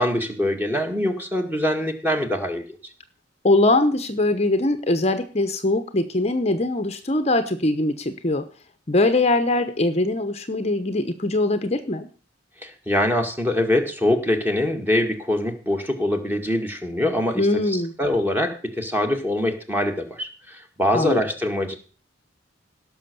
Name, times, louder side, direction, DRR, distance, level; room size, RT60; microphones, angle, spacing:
voice 1, 0.0-2.8 12.6-21.8, left 1 dB, 10° right, 4 dB, 2.0 m, -24 dB
voice 2, 3.4-8.4 8.9-12.1 17.4-17.9 20.9-21.2, left 2 dB, 35° left, 10 dB, 0.9 m, -22 dB
17.0 x 6.4 x 6.8 m, 0.38 s
head